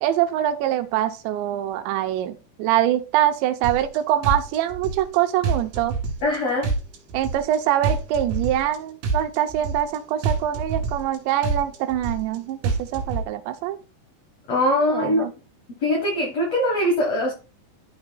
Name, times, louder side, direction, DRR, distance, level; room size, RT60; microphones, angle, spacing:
voice 1, 0.0-6.0 7.1-13.8 14.9-15.3, right 12 dB, 85° right, 8 dB, 2.9 m, -24 dB
sound 1, 3.6-4.0 4.2-5.2 5.4-6.4 6.6-7.6 7.8-8.8 9.0-10.0 10.2-11.2 11.4-12.4 12.6-13.2, right 4 dB, 65° right, 3.5 m, -26 dB
voice 2, 6.2-6.7 14.5-15.3 15.8-17.3, left 1 dB, 70° left, -1 dB, 1.5 m, -22 dB
13.0 x 5.2 x 2.3 m, 0.34 s
omnidirectional pair, 5.2 m